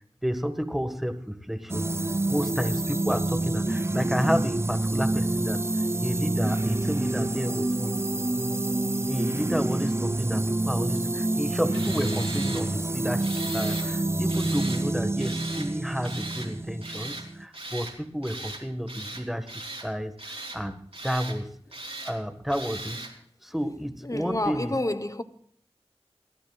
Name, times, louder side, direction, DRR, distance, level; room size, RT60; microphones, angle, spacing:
voice 1, 0.2-1.9 2.3-5.6 6.0-8.0 9.0-21.6 22.0-23.1 23.4-24.8, equal, ahead, 1.5 m, -31 dB
sound 1, 1.7-17.4, right 2 dB, 25° right, 0.4 m, -27 dB
Tools, 11.7-12.6 13.2-13.9 14.3-14.8 15.2-15.7 16.0-16.5 16.8-17.3 17.5-17.9 18.2-18.6 18.9-19.9 20.2-20.6 20.9-21.4 21.7-22.1 22.5-23.1, right 2 dB, 65° right, 3.3 m, -38 dB
voice 2, 24.0-25.2, left 1 dB, 30° left, 1.0 m, -29 dB
28.5 x 12.0 x 2.4 m
wide cardioid pair, 50°, 10 cm